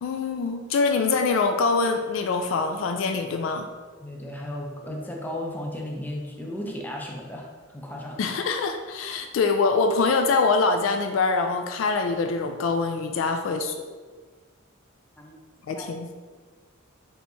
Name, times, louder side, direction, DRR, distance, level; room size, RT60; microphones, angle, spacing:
voice 1, 0.0-3.7 8.2-13.8 15.7-16.2, left 4 dB, 75° left, 5 dB, 0.3 m, -24 dB
voice 2, 4.0-8.2 15.2-15.4 15.7-15.9, left 1 dB, 10° left, -1 dB, 0.4 m, -35 dB
4.3 x 3.4 x 2.7 m, 1.4 s
head